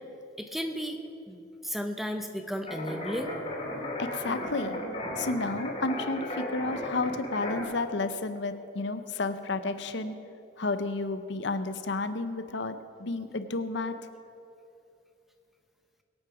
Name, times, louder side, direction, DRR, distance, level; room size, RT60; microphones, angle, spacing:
voice 1, 0.4-1.0 1.3-3.4, equal, ahead, 5 dB, 0.8 m, -34 dB
sound 1, 2.7-7.6, left 1 dB, 30° left, 2.7 m, -35 dB
voice 2, 4.0-4.8 5.2-10.1 10.6-13.9, left 3 dB, 60° left, 10 dB, 0.7 m, -31 dB
22.0 x 8.8 x 5.0 m, 2.8 s
head